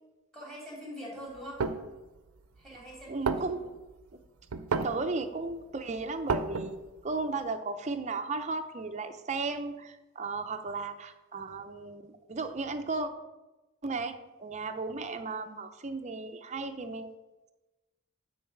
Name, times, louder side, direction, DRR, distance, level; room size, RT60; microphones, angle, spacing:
voice 1, 0.3-1.6 2.6-3.7, equal, ahead, -4 dB, 2.8 m, -44 dB
sound 1, 1.4-1.9 2.6-2.7 3.0-3.1 3.3-3.9 4.5-5.1 5.5-5.6 5.8-6.9, right 4 dB, 85° right, 0.5 m, -31 dB
voice 2, 3.1-3.6 4.8-13.1 13.8-17.2, right 3 dB, 35° right, 7 dB, 0.5 m, -35 dB
9.5 x 3.9 x 5.9 m, 1.1 s
head